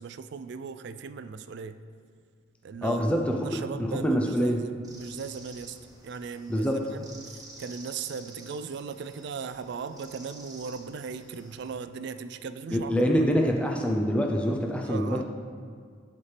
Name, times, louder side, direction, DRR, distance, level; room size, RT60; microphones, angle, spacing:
voice 1, 0.0-1.7 2.6-3.0 3.4-5.8 6.0-7.1 7.6-13.1 14.8-15.2, right 5 dB, 65° right, 11 dB, 0.3 m, -38 dB
voice 2, 2.8-4.7 6.5-6.8 12.7-15.2, equal, 5° left, 1 dB, 0.4 m, -25 dB
sound 1, 4.8-11.7, right 2 dB, 20° right, 1.0 m, -50 dB
12.0 x 4.3 x 3.3 m, 2.1 s
head